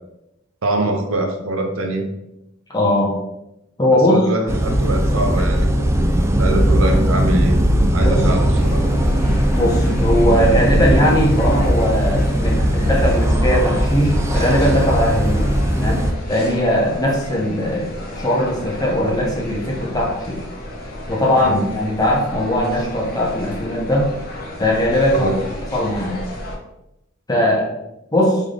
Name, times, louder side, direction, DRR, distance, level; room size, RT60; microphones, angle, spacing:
voice 1, 0.6-2.1 3.9-5.9 6.4-7.6 7.9-8.9 21.4-21.7 25.1-25.4, right 1 dB, 75° right, 3 dB, 0.8 m, -23 dB
voice 2, 2.7-3.2 3.8-4.2 8.0-8.3 9.5-15.5 15.7-20.4 21.1-24.1 24.6-25.3 25.7-26.2 27.3-27.7 28.1-28.4, equal, 20° left, -2 dB, 0.9 m, -19 dB
sound 1, 4.5-16.1, equal, 15° right, 0.3 m, -18 dB
sound 2, 8.5-26.6, left 1 dB, 50° left, 0.9 m, -32 dB
3.8 x 3.6 x 3.3 m, 0.87 s
head